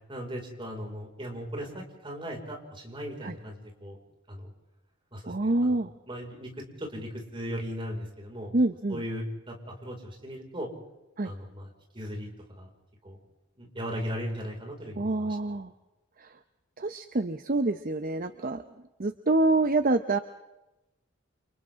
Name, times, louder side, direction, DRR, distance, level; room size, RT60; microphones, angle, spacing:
voice 1, 0.1-4.0 4.3-4.5 5.1-5.8 6.1-8.5 8.9-10.7 11.2-11.7 11.9-12.3 12.6-12.7 13.0-13.2 13.6-15.4, equal, 25° right, 0 dB, 5.6 m, -37 dB
voice 2, 5.3-5.9 8.5-9.0 11.2-11.3 15.0-15.7 16.2-16.3 16.8-18.6 19.0-20.2, right 2 dB, 45° right, 9 dB, 0.9 m, -26 dB
30.0 x 28.0 x 3.8 m, 1.0 s
head